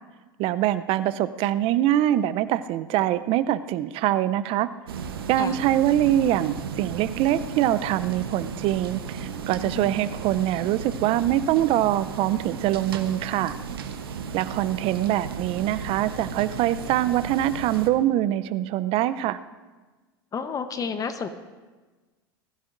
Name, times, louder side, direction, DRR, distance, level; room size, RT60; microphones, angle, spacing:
voice 1, 0.4-4.7 5.3-13.5 14.3-19.4, right 13 dB, 50° right, 14 dB, 0.6 m, -24 dB
sound 1, 4.9-17.9, right 6 dB, 80° right, 1.0 m, -35 dB
voice 2, 20.3-21.3, left 6 dB, 30° left, 10 dB, 0.9 m, -31 dB
20.5 x 15.0 x 2.6 m, 1.3 s
hypercardioid pair, 85°, 12 cm